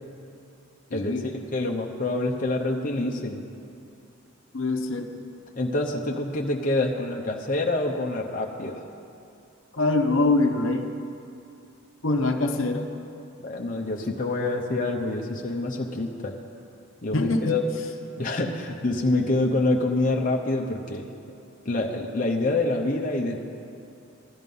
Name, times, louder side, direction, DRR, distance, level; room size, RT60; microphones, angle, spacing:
voice 1, 0.9-1.3 4.5-5.3 9.8-10.9 12.0-12.9 17.1-17.6, left 2 dB, 65° left, 5 dB, 0.9 m, -24 dB
voice 2, 1.5-3.4 5.6-8.8 13.4-16.3 17.0-17.6 18.2-21.0 21.6-23.4, left 2 dB, 40° left, 0 dB, 0.8 m, -26 dB
14.0 x 11.0 x 5.4 m, 2.6 s
head